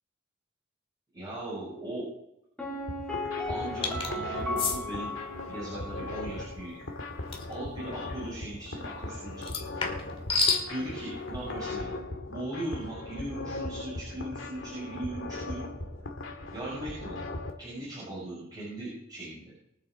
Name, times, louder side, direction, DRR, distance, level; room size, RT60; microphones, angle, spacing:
voice 1, 1.1-2.1 3.5-5.2 5.5-6.8 7.5-9.6 10.7-11.9 12.3-15.6 16.5-17.2 17.6-19.5, right 1 dB, 20° right, -7 dB, 6.3 m, -38 dB
Piano, 2.6-6.3 6.6-6.7, left 2 dB, 5° left, 2.9 m, -36 dB
sound 1, 2.7-17.5, left 2 dB, 90° left, 2.1 m, -38 dB
sound 2, 3.8-4.1 4.6-4.8 7.3-7.5 9.4-10.7, left 4 dB, 30° left, 2.2 m, -28 dB
23.5 x 8.4 x 3.8 m, 0.82 s
head